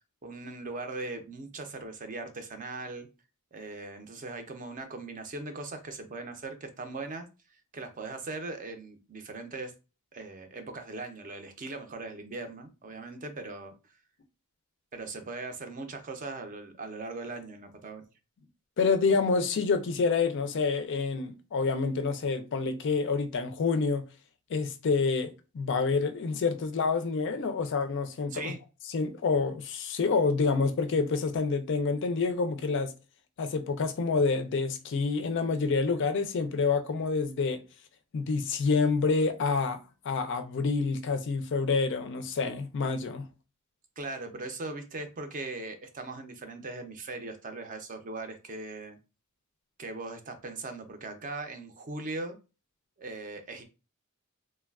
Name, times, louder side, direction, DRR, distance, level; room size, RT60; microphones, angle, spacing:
voice 1, 0.2-3.1 3.5-7.3 7.7-9.7 10.1-13.7 14.9-18.1 28.3-28.6 44.0-49.0 49.8-52.4 53.0-53.6, right 3 dB, 35° right, 0.5 m, -39 dB
voice 2, 18.8-24.1 24.5-25.3 25.5-28.5 28.9-32.9 33.4-37.6 38.1-43.3, left 4 dB, 55° left, 0.4 m, -28 dB
3.2 x 2.2 x 2.3 m
head